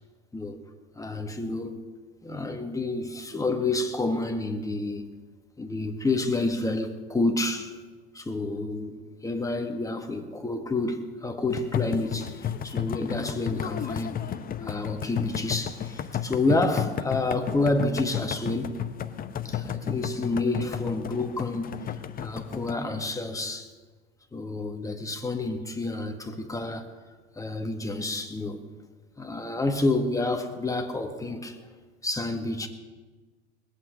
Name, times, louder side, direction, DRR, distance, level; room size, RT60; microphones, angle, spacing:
voice 1, 1.0-1.8 2.2-5.1 5.6-7.7 8.1-9.0 9.2-14.2 14.6-18.8 19.4-21.9 22.2-23.7 24.3-26.9 27.4-28.6 29.2-31.6 32.0-32.7, left 2 dB, 10° left, 1.7 m, -29 dB
sound 1, 11.5-22.7, left 9 dB, 25° left, 0.8 m, -33 dB
20.5 x 8.5 x 6.6 m
hypercardioid pair, 80°, 32 cm